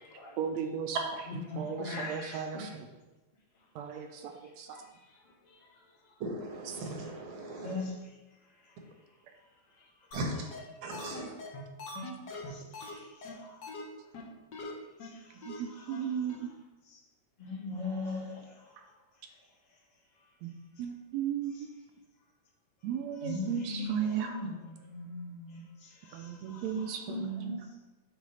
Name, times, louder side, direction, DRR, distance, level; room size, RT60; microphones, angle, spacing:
voice 1, 0.4-1.2 1.6-2.9 3.8-4.8 6.7-6.8 15.3-16.5 18.8-18.9 20.4-20.5 20.8-21.7 22.8-24.4 26.1-27.5, right 8 dB, 80° right, 5 dB, 1.7 m, -35 dB
voice 2, 1.3-2.7 3.5-6.2 7.6-10.5 12.4-13.7 14.0-14.1 15.0-16.5 16.8-17.0 17.4-20.9 21.5-21.6 23.1-27.7, left 3 dB, 30° left, -5 dB, 0.8 m, -43 dB
voice 3, 6.2-7.7 10.1-10.4 10.8-11.3, right 1 dB, 60° right, 1 dB, 1.5 m, -38 dB
sound 1, 10.1-10.2 10.5-10.6 10.9-12.9 13.2-13.3 13.6-13.8 14.1-14.2 14.5-14.7 15.0-15.1 15.4-15.6 15.9-16.0 16.3-16.4, left 3 dB, 60° left, 1.1 m, -42 dB
8.1 x 4.1 x 5.5 m, 1.1 s
omnidirectional pair, 3.4 m